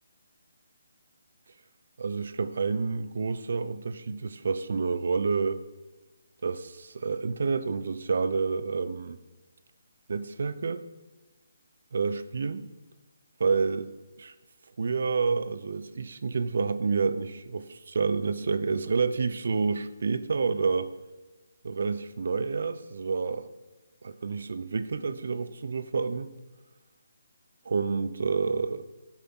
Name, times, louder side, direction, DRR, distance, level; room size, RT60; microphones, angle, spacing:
voice 1, 2.0-5.6 6.4-9.2 10.1-10.8 11.9-12.7 13.4-13.9 14.2-14.3 14.8-20.9 21.6-23.5 24.0-26.3 27.6-28.9, right 4 dB, 60° right, 14 dB, 0.7 m, -29 dB
16.0 x 8.8 x 3.8 m, 1.2 s
figure-of-eight pair, 145°, 0 cm